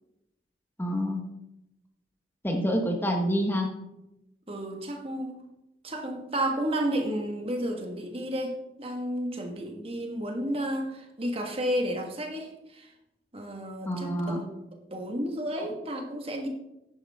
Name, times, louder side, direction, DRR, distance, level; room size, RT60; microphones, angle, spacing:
voice 1, 0.8-1.2 2.4-3.7 13.9-14.4, equal, 10° left, 2 dB, 1.0 m, -27 dB
voice 2, 4.5-5.4 5.8-12.9 13.3-14.5 14.9-16.5, right 1 dB, 35° right, 3 dB, 1.5 m, -32 dB
10.5 x 9.7 x 3.5 m, 0.90 s
head